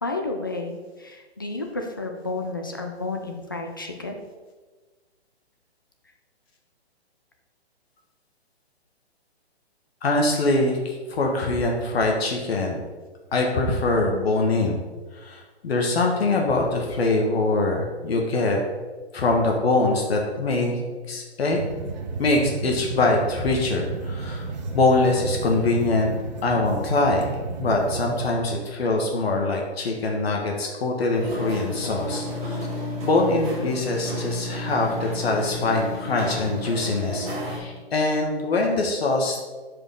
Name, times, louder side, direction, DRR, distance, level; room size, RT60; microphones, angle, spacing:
voice 1, 0.0-4.1, left 3 dB, 20° left, 3 dB, 0.4 m, -31 dB
voice 2, 10.0-12.8 13.3-14.8 15.2-18.6 19.1-20.8 21.1-21.6 22.2-24.5 24.7-26.1 26.4-32.7 33.0-39.4, left 2 dB, 65° left, 1 dB, 1.6 m, -23 dB
sound 1, 21.5-28.3, right 4 dB, 40° right, 1.0 m, -32 dB
sound 2, 31.1-37.6, left 1 dB, 20° right, 1.8 m, -31 dB
10.0 x 5.1 x 3.8 m, 1.3 s
hypercardioid pair, 165°, 33 cm